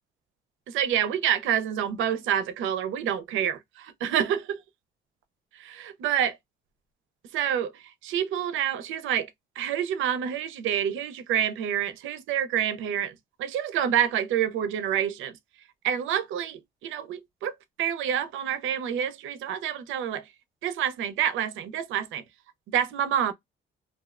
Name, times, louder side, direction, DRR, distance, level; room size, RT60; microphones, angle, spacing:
voice 1, 0.7-4.6 5.6-6.4 7.3-7.7 8.0-9.3 9.6-13.1 13.4-15.3 15.8-17.5 17.8-20.2 20.6-22.2 22.7-23.3, right 9 dB, 85° right, 0.5 m, -27 dB
2.6 x 2.0 x 2.3 m
cardioid pair, 90°, 20 cm